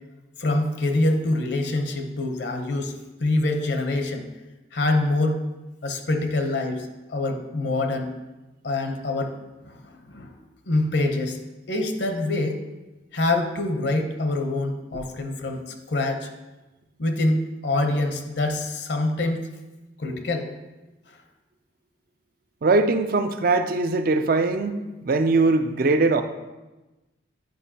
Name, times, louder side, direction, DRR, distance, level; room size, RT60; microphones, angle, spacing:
voice 1, 0.4-4.3 4.7-5.4 5.8-8.1 8.6-9.3 9.6-10.4 10.7-11.4 11.7-12.6 13.1-16.3 17.0-19.4 20.0-20.5 21.1-21.2, left 2 dB, 65° left, 5 dB, 0.7 m, -25 dB
voice 2, 22.6-26.2, right 3 dB, 50° right, 9 dB, 0.4 m, -21 dB
9.2 x 5.2 x 2.8 m, 1.1 s
head